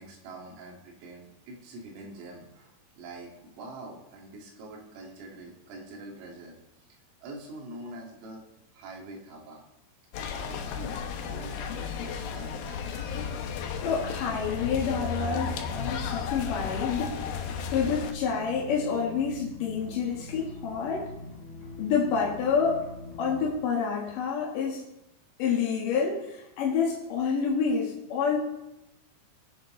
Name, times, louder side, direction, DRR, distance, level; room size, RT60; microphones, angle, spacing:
voice 1, 0.0-6.9 7.2-8.4 8.7-9.6 10.2-11.0 11.2-12.5, right 2 dB, 85° right, -1 dB, 4.9 m, -45 dB
sound 1, 10.1-18.1, left 7 dB, 85° left, 2.1 m, -34 dB
sound 2, 10.5-23.5, left 2 dB, 10° left, 2.9 m, -43 dB
voice 2, 13.8-17.2 17.7-21.1 21.8-22.8 23.2-24.8 25.4-28.4, left 6 dB, 65° left, -2 dB, 2.1 m, -28 dB
19.5 x 7.7 x 3.8 m, 0.92 s
omnidirectional pair, 5.8 m